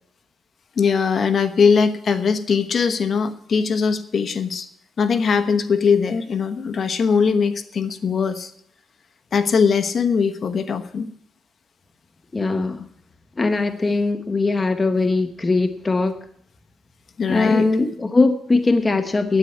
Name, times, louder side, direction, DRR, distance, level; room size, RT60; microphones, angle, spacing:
voice 1, 0.8-4.7 5.0-8.5 9.3-11.1 17.2-17.7, left 6 dB, 45° left, 9 dB, 1.1 m, -20 dB
voice 2, 12.3-12.9 13.4-16.2 17.3-19.4, left 3 dB, 20° left, 8 dB, 0.9 m, -20 dB
9.8 x 9.3 x 8.4 m, 0.67 s
cardioid pair, 110°, 0 cm